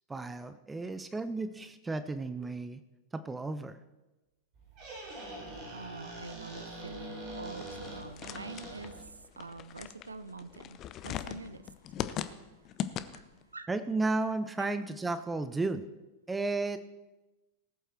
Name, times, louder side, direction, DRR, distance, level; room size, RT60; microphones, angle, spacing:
voice 1, 0.1-2.8 3.1-3.8 13.7-15.9 16.3-16.8, right 3 dB, 10° right, 0.6 m, -33 dB
Squeak, 4.5-9.2, right 1 dB, 40° right, 4.2 m, -44 dB
voice 2, 5.7-11.7 13.1-13.2 13.5-13.7 14.6-14.7, right 3 dB, 75° right, 0.6 m, -45 dB
sound 1, 7.6-13.4, left 10 dB, 35° left, 0.7 m, -40 dB
18.5 x 8.0 x 4.5 m
figure-of-eight pair, 90°, 0 cm